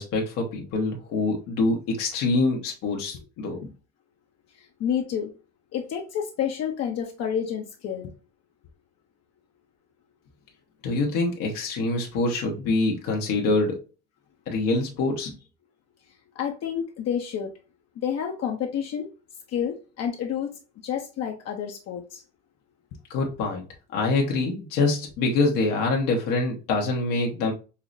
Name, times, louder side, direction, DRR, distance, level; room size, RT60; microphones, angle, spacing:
voice 1, 0.0-3.7 10.8-13.8 14.5-15.4 23.1-23.6 23.9-27.5, left 3 dB, 80° left, 1.0 m, -25 dB
voice 2, 4.6-5.3 5.7-8.1 16.4-17.5 18.0-19.1 19.5-22.2, left 8 dB, 55° left, 0.6 m, -29 dB
5.5 x 2.0 x 2.4 m
cardioid pair, 120°, 32 cm